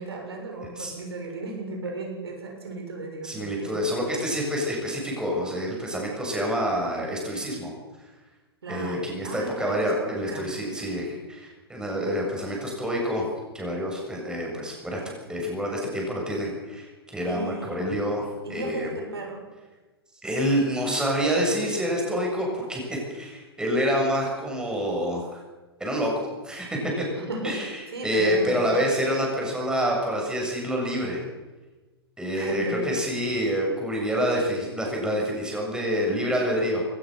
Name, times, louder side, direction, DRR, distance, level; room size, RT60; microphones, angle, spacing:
voice 1, 0.0-3.8 8.6-10.5 17.2-17.9 18.4-19.4 27.1-27.6 27.9-29.0 32.3-32.9, right 2 dB, 75° right, 1 dB, 6.6 m, -35 dB
voice 2, 3.2-7.7 8.7-13.3 13.5-15.0 15.3-18.9 20.2-25.4 25.8-27.0 27.4-31.2 32.2-36.9, equal, 5° right, -1 dB, 7.8 m, -27 dB
21.5 x 18.5 x 6.8 m, 1.2 s
figure-of-eight pair, 100°, 13 cm